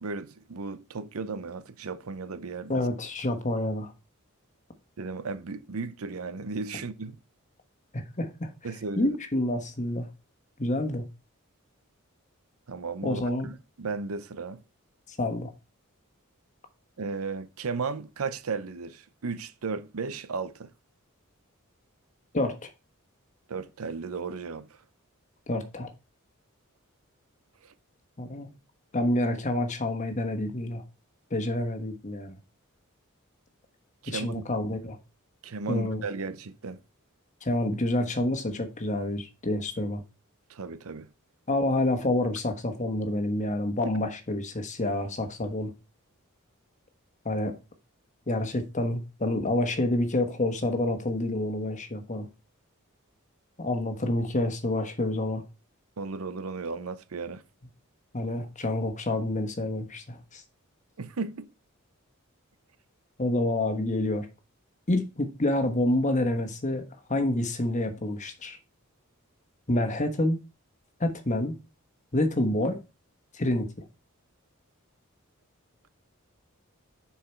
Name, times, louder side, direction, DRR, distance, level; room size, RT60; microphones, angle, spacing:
voice 1, 0.0-2.8 5.0-7.2 8.6-9.2 12.7-14.6 17.0-20.7 23.5-24.7 27.6-27.7 34.0-34.5 35.4-36.8 40.5-41.1 43.8-43.9 56.0-57.4 61.0-61.5, right 4 dB, 85° right, 0.6 m, -35 dB
voice 2, 2.7-3.9 7.9-8.5 9.0-10.1 10.6-11.0 13.0-13.5 15.2-15.5 22.3-22.7 25.5-25.9 28.2-28.5 28.9-30.8 31.3-32.4 34.1-35.0 35.7-36.1 37.4-40.0 41.5-45.7 47.2-47.5 48.3-52.3 53.6-55.4 58.1-60.4 63.2-64.3 64.9-68.6 69.7-70.4 71.0-71.5 72.1-72.8 73.3-73.9, left 1 dB, 35° left, 1.2 m, -28 dB
6.8 x 4.7 x 4.5 m
head